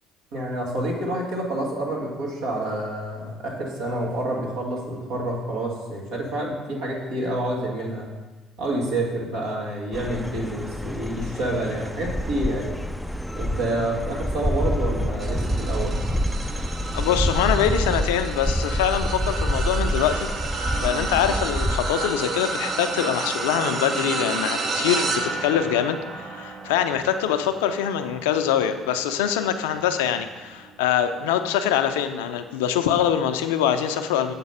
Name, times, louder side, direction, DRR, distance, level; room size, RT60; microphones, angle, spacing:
voice 1, 0.3-8.1 8.6-12.8 13.3-16.1, right 1 dB, 75° right, -3 dB, 1.6 m, -28 dB
sound 1, 9.9-21.9, equal, ahead, 0.3 m, -27 dB
sound 2, 15.2-30.7 31.2-31.5 32.7-32.8, right 3 dB, 50° right, 0.7 m, -31 dB
voice 2, 16.9-20.3 20.8-34.3, left 9 dB, 80° left, 9 dB, 0.4 m, -24 dB
7.3 x 4.0 x 5.5 m, 1.2 s
hypercardioid pair, 60°, 0 cm